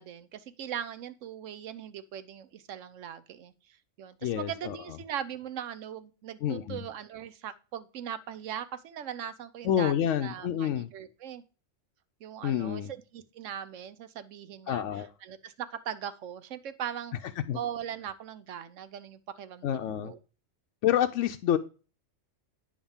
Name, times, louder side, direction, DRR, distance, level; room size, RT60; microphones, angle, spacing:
voice 1, 0.0-9.9 10.2-11.4 12.2-17.1 17.5-20.2, right 9 dB, 85° right, 1.1 m, -40 dB
voice 2, 4.2-4.8 6.4-6.8 9.6-10.9 12.4-12.9 14.7-15.1 17.5-17.6 19.6-20.1 20.8-21.6, left 10 dB, 80° left, 0.9 m, -28 dB
9.1 x 3.7 x 7.1 m
omnidirectional pair, 1.3 m